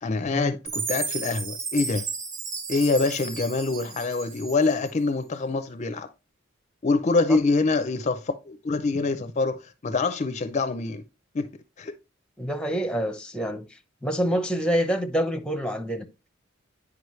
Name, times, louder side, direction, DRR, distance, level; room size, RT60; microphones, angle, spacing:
voice 1, 0.0-2.1 2.7-6.1 6.8-11.0 11.3-11.5 11.8-11.9, left 3 dB, 35° left, 0.5 m, -25 dB
Chime, 0.7-4.9, right 4 dB, 90° right, 1.9 m, -34 dB
voice 2, 12.4-13.7 14.0-16.1, equal, 5° left, 0.8 m, -26 dB
9.4 x 5.0 x 3.1 m
head